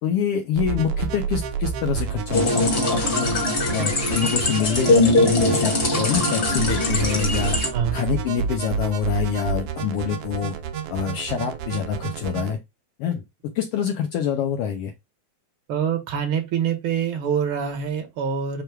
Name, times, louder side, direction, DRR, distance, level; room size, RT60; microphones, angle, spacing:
voice 1, 0.0-10.5 10.9-12.6 13.0-13.2 13.5-14.9, left 8 dB, 85° left, 1.3 m, -26 dB
sound 1, 0.6-12.5, right 7 dB, 90° right, 1.3 m, -29 dB
sound 2, 2.3-7.7, left 2 dB, 40° left, 0.9 m, -22 dB
voice 2, 15.7-18.6, right 7 dB, 60° right, 1.5 m, -25 dB
5.1 x 2.2 x 4.5 m
omnidirectional pair, 3.3 m